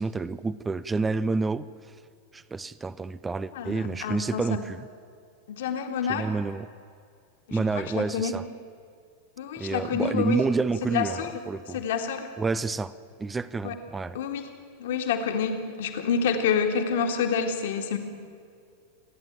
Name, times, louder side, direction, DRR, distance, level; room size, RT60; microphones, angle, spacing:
voice 1, 0.0-2.0 2.3-4.8 6.1-6.7 7.5-8.4 9.6-11.8 12.4-12.9 13.2-14.2, right 3 dB, 15° right, 17 dB, 0.6 m, -29 dB
voice 2, 3.5-4.6 5.5-6.3 7.5-8.3 9.4-10.4 10.8-11.3 11.7-12.3 13.6-13.8 14.1-14.4 14.8-18.0, left 6 dB, 55° left, 4 dB, 2.1 m, -28 dB
28.5 x 10.5 x 9.1 m, 2.3 s
figure-of-eight pair, 90°, 0 cm